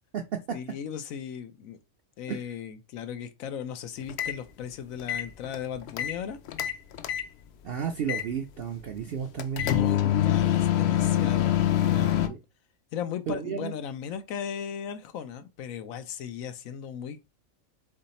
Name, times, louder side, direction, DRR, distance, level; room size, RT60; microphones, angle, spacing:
voice 1, 0.5-1.8 2.2-6.4 9.6-11.6 11.9-12.4 12.9-17.3, left 8 dB, 90° left, 1.1 m, -37 dB
sound 1, 4.1-4.4 5.0-6.2 6.5-7.3 8.1-8.3 9.4-12.3, left 11 dB, 65° left, 0.7 m, -25 dB
voice 2, 7.6-9.7 12.3-12.4 13.3-13.7, right 7 dB, 60° right, 0.7 m, -32 dB
3.8 x 3.3 x 4.1 m
omnidirectional pair, 1.4 m